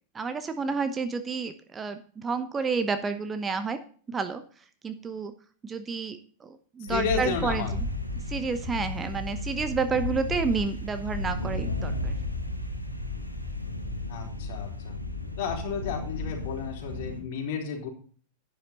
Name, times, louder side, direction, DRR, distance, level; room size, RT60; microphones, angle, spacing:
voice 1, 0.1-3.8 4.1-4.4 4.8-5.3 5.6-7.8 8.3-12.1, right 5 dB, 20° right, 9 dB, 1.0 m, -30 dB
sound 1, 6.9-17.2, left 2 dB, 90° left, 1.8 m, -33 dB
voice 2, 6.9-7.7 14.1-15.0 15.4-17.9, left 6 dB, 50° left, 1 dB, 4.0 m, -32 dB
11.5 x 9.8 x 4.0 m, 0.43 s
figure-of-eight pair, 90°, 0 cm